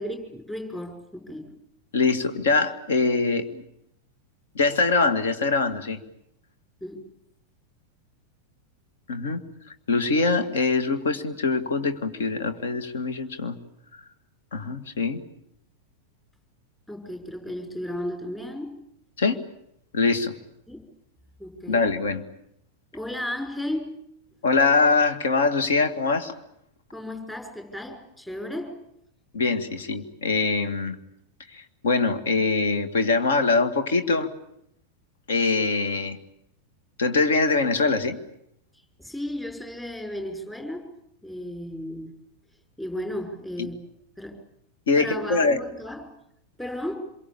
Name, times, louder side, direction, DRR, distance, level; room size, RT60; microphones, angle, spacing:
voice 1, 0.0-1.5 6.8-7.0 16.9-18.8 20.7-20.8 21.4-21.9 22.9-23.9 26.9-28.8 39.0-40.9 41.2-42.1 42.8-43.8 44.2-44.4 45.0-46.1 46.6-47.0, left 1 dB, 10° left, 5 dB, 5.8 m, -34 dB
voice 2, 1.9-3.6 4.6-6.0 9.1-9.4 9.9-13.6 14.5-15.2 19.2-19.4 19.9-20.3 21.7-22.2 24.4-26.3 29.3-31.0 31.5-34.3 35.3-36.2 37.0-38.2 43.6-43.7 44.9-45.6, left 4 dB, 60° left, 9 dB, 2.2 m, -23 dB
27.0 x 23.0 x 8.8 m, 0.76 s
figure-of-eight pair, 90°, 0 cm